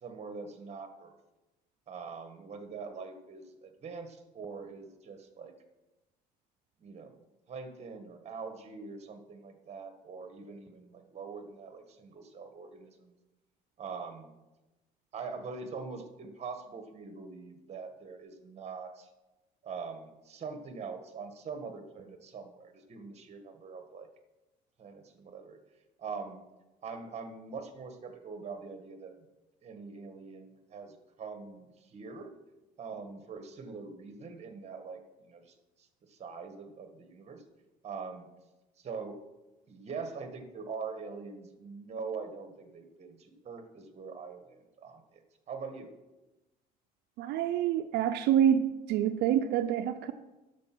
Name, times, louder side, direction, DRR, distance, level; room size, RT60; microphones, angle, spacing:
voice 1, 0.0-1.1 1.9-5.5 6.8-7.2 7.5-13.1 13.8-14.4 15.1-19.1 19.6-24.1 24.8-25.6 26.0-26.4 26.8-29.1 29.6-32.3 32.8-35.0 35.3-35.5 36.1-37.4 37.8-38.3 38.8-39.2 39.7-45.2 45.5-45.9, right 5 dB, 40° right, 7 dB, 1.7 m, -43 dB
voice 2, 47.2-50.1, right 10 dB, 80° right, 8 dB, 0.6 m, -27 dB
10.5 x 7.0 x 6.1 m, 1.0 s
cardioid pair, 110°, 17 cm